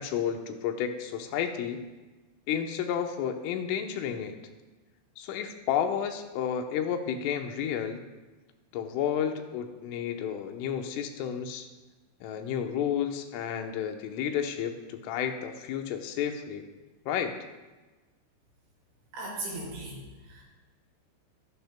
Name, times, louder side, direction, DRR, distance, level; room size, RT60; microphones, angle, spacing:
voice 1, 0.0-1.8 2.5-4.4 5.2-8.0 8.7-11.7 12.2-16.6 17.1-17.4, left 8 dB, 85° left, 5 dB, 3.5 m, -31 dB
voice 2, 19.1-20.0 20.3-20.4, right 2 dB, 70° right, -6 dB, 7.2 m, -37 dB
22.5 x 11.5 x 2.2 m, 1.2 s
omnidirectional pair, 5.6 m